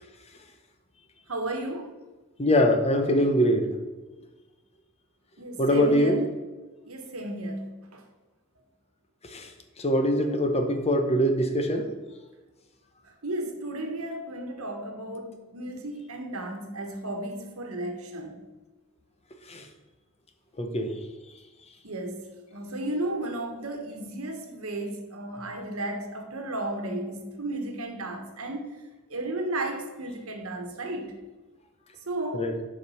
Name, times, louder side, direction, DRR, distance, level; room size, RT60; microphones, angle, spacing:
voice 1, 1.3-1.9 5.4-6.2 6.9-8.0 13.2-18.4 21.8-22.3 22.5-28.7 29.1-31.1 32.1-32.6, right 1 dB, 75° right, 4 dB, 1.3 m, -34 dB
voice 2, 2.4-3.7 5.6-6.2 9.3-9.5 9.8-11.9 19.5-19.6 20.6-20.9 32.3-32.5, equal, 30° left, 5 dB, 0.8 m, -23 dB
7.1 x 5.0 x 5.6 m, 1.2 s
head